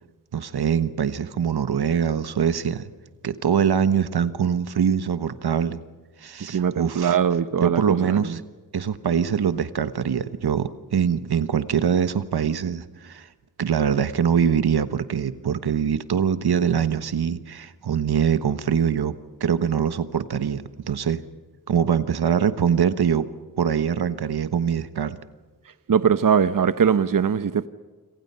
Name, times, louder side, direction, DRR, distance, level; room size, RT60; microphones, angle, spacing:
voice 1, 0.3-2.9 3.2-5.8 6.2-7.2 7.6-8.4 8.7-13.3 13.6-19.1 19.4-21.2 21.7-23.3 23.6-25.2, right 7 dB, 90° right, 1.3 m, -23 dB
voice 2, 6.5-8.4 25.9-27.7, right 7 dB, 60° right, 0.9 m, -21 dB
28.5 x 26.5 x 5.6 m
wide cardioid pair, 85°, 37 cm